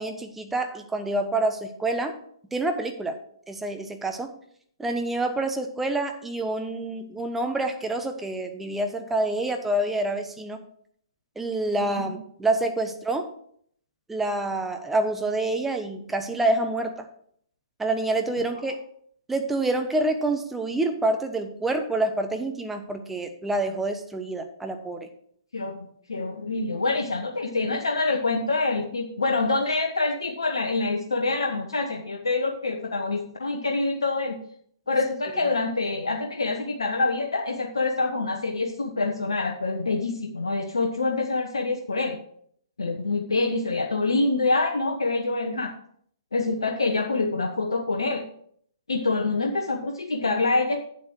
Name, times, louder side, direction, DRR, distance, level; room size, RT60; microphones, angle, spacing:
voice 1, 0.0-2.2 2.5-3.1 3.5-4.3 4.8-10.6 11.4-13.3 14.1-17.1 17.8-18.7 19.3-25.1, right 2 dB, 5° right, 5 dB, 1.0 m, -27 dB
voice 2, 25.5-34.4 34.9-42.2 42.8-45.7 46.3-48.2 48.9-50.8, left 3 dB, 70° left, 2 dB, 1.1 m, -26 dB
8.8 x 7.3 x 4.6 m, 0.64 s
figure-of-eight pair, 120°, 3 cm